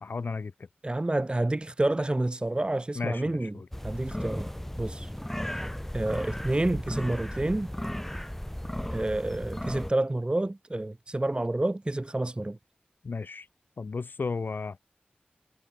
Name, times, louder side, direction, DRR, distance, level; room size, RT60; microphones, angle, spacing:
voice 1, 0.0-0.5 3.0-3.7 13.0-13.5 13.8-14.8, left 4 dB, 70° left, 0.5 m, -34 dB
voice 2, 0.8-3.5 3.8-4.5 4.8-5.1 5.9-7.7 8.9-12.6, right 2 dB, 30° right, 0.8 m, -29 dB
sound 1, 3.7-9.9, equal, 10° left, 0.8 m, -35 dB
cardioid pair, 45°, 3 cm